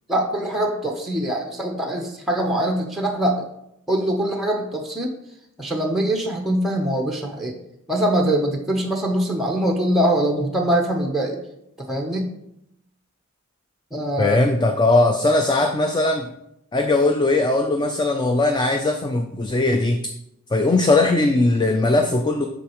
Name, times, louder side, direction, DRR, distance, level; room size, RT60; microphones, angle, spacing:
voice 1, 0.1-3.4 3.9-5.1 5.6-7.6 7.9-11.4 11.8-12.3 13.9-14.4, right 1 dB, ahead, 1 dB, 0.8 m, -23 dB
voice 2, 14.2-16.3 16.7-20.0 20.5-22.5, left 2 dB, 20° left, 5 dB, 0.4 m, -19 dB
8.1 x 6.3 x 3.0 m, 0.78 s
head